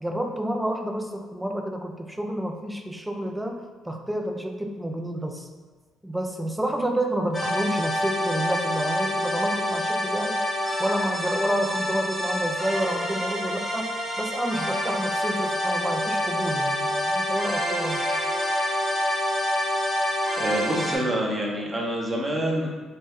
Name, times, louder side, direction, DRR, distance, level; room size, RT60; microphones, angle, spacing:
voice 1, 0.0-5.5 6.0-10.4 10.8-18.1, right 1 dB, 5° right, 3 dB, 0.4 m, -29 dB
sound 1, 7.3-21.0, left 1 dB, 15° left, 0.9 m, -27 dB
voice 2, 20.4-22.7, right 1 dB, 25° right, -2 dB, 0.9 m, -27 dB
3.1 x 2.1 x 3.7 m, 1.4 s
hypercardioid pair, 55°, 0 cm